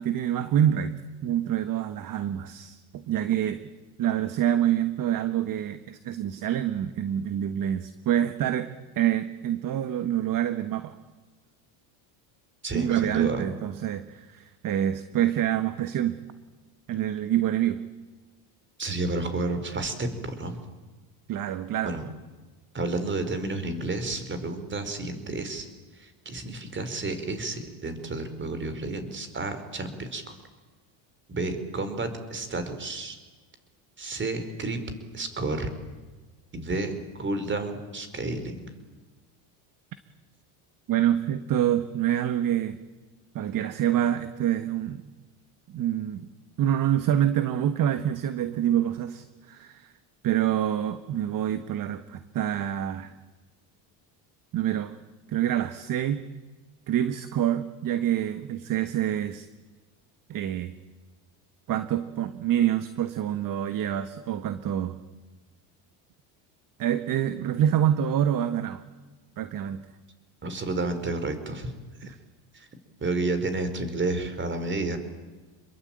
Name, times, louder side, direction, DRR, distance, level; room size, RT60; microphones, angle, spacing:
voice 1, 0.0-3.6 4.0-10.9 12.7-16.2 16.9-17.8 21.3-22.0 40.9-42.8 43.3-45.0 45.7-46.2 46.6-49.9 50.2-53.1 54.5-54.9 55.3-56.3 56.9-59.5 60.3-60.7 61.7-65.0 66.8-68.8 69.4-69.9, right 11 dB, 40° right, 11 dB, 1.5 m, -26 dB
voice 2, 12.6-13.4 18.8-20.6 21.8-22.1 22.7-25.7 26.0-30.3 31.3-33.2 34.0-34.8 35.1-35.7 36.5-38.7 70.4-71.7 72.0-72.1 72.5-72.7 73.0-75.0, right 2 dB, 25° right, 10 dB, 4.7 m, -31 dB
28.5 x 22.0 x 9.0 m, 1.3 s
cardioid pair, 130°, 49 cm